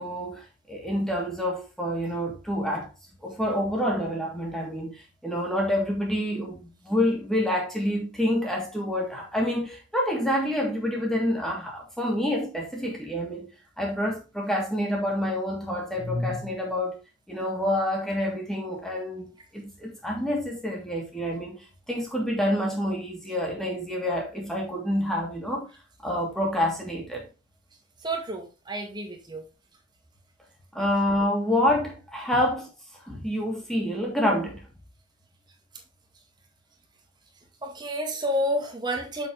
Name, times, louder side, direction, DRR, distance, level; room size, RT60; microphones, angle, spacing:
voice 1, 0.0-2.9 3.2-13.5 13.8-17.0 17.3-25.7 26.0-27.3 30.7-32.7 33.1-34.7, left 1 dB, ahead, 2.9 m, -27 dB
voice 2, 28.0-29.5 37.6-39.3, equal, 20° right, 2.0 m, -30 dB
7.4 x 6.8 x 3.5 m
head